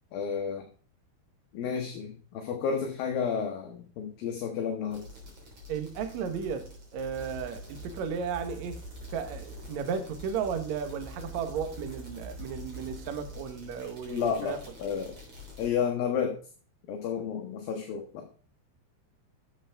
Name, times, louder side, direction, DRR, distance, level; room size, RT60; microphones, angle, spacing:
voice 1, 0.1-0.7 1.5-5.0 14.1-15.2 15.6-16.4 16.9-18.3, left 7 dB, 70° left, 2.6 m, -31 dB
sound 1, 4.9-15.7, left 1 dB, 30° right, 3.6 m, -45 dB
voice 2, 5.7-8.8 9.1-14.6, right 7 dB, 90° right, 1.5 m, -34 dB
11.5 x 7.0 x 3.4 m
omnidirectional pair, 4.8 m